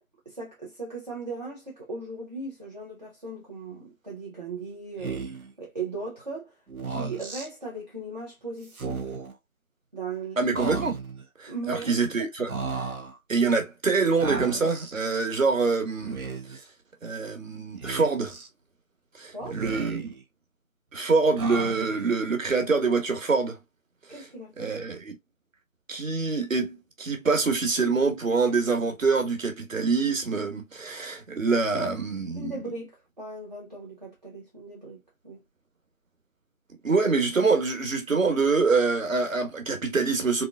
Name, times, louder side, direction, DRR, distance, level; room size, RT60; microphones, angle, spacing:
voice 1, 0.3-6.6 6.9-9.1 9.9-10.4 11.5-12.0 19.3-19.6 24.1-24.7 32.4-35.4, right 3 dB, 30° right, 0.7 m, -38 dB
Speech, 5.0-5.5 6.7-7.5 8.7-9.3 10.5-11.2 12.5-13.1 14.2-14.9 16.0-16.6 17.8-18.5 19.4-20.2 21.4-22.1, right 4 dB, 90° right, 0.9 m, -34 dB
voice 2, 10.4-10.9 11.4-12.9 13.3-16.2 16.5-16.6 17.0-18.3 19.2-20.1 20.9-23.6 24.6-25.1 25.9-32.6 36.8-40.5, right 4 dB, 65° right, 1.4 m, -25 dB
3.6 x 2.3 x 2.3 m
figure-of-eight pair, 160°, 42 cm